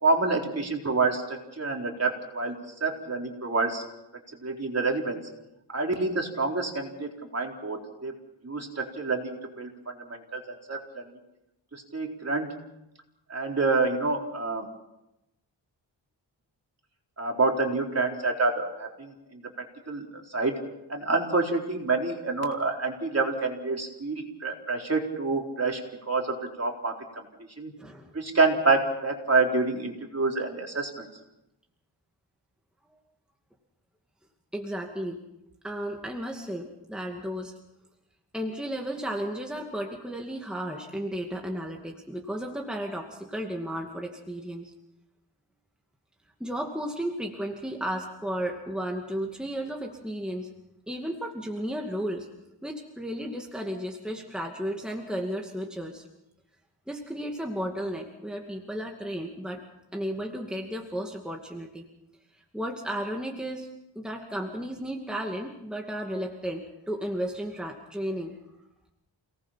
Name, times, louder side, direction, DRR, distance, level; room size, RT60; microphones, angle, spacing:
voice 1, 0.0-2.6 2.8-3.8 4.4-5.2 5.7-8.1 8.4-11.0 11.7-12.5 13.3-14.7 17.2-19.4 19.9-20.6 20.9-27.0 27.6-27.7 28.1-31.0, right 3 dB, 35° right, 1 dB, 4.1 m, -27 dB
voice 2, 27.8-28.1 34.5-35.2 35.6-37.5 38.3-44.7 46.4-50.5 50.9-52.3 52.6-56.1 56.9-59.6 59.9-61.9 62.5-63.7 64.0-68.4, equal, ahead, 1 dB, 2.3 m, -34 dB
29.0 x 19.0 x 5.8 m, 0.89 s
wide cardioid pair, 100°, 45 cm